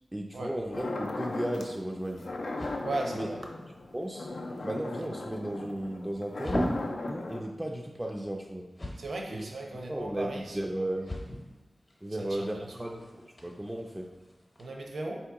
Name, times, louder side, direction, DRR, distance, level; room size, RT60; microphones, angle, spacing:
voice 1, 0.1-2.3 3.1-3.3 3.9-4.3 4.6-6.7 7.1-8.7 9.3-9.5 9.9-11.1 12.0-14.1, right 1 dB, 10° right, 0 dB, 0.3 m, -35 dB
sound 1, 0.7-1.8 2.2-7.4, left 2 dB, 85° left, 0.4 m, -37 dB
sound 2, 2.1-14.7, equal, 35° left, 0.8 m, -41 dB
voice 2, 2.8-3.4 9.0-10.6 12.2-13.0 14.6-15.2, right 2 dB, 80° right, 0 dB, 0.7 m, -37 dB
4.3 x 2.8 x 3.5 m, 1.1 s
wide cardioid pair, 95°, 0 cm